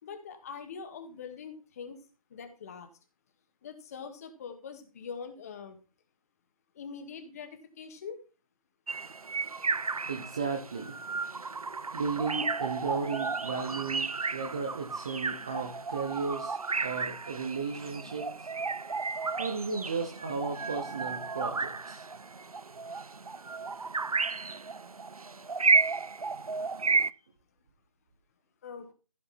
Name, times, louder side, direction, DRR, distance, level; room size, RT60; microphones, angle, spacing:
voice 1, 0.0-2.0 2.3-2.9 3.6-5.8 6.7-8.2 26.8-26.9 28.6-28.9, left 6 dB, 25° left, 7 dB, 1.9 m, -43 dB
sound 1, 8.9-27.1, right 4 dB, 85° right, 0.7 m, -33 dB
voice 2, 10.1-11.0 11.9-18.5 19.4-22.1, right 4 dB, 10° right, 4 dB, 0.4 m, -35 dB
15.0 x 6.7 x 4.3 m, 0.34 s
figure-of-eight pair, 160°, 18 cm